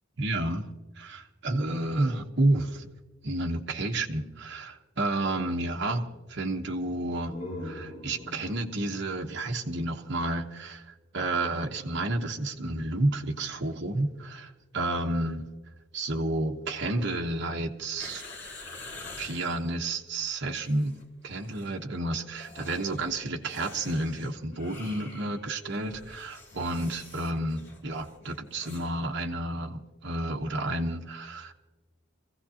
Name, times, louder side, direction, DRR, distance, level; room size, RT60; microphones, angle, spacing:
voice 1, 0.2-0.7 1.0-2.9 3.2-7.3 7.6-15.4 15.9-18.2 19.2-20.9 21.2-31.5, right 2 dB, 60° right, 1.1 m, -30 dB
sound 1, 7.0-10.6, left 1 dB, 40° left, 4.2 m, -43 dB
sound 2, 18.0-19.6 20.4-21.1 21.3-21.7 22.3-28.9 29.2-29.3, left 3 dB, 65° left, 2.9 m, -47 dB
25.0 x 16.0 x 2.9 m
head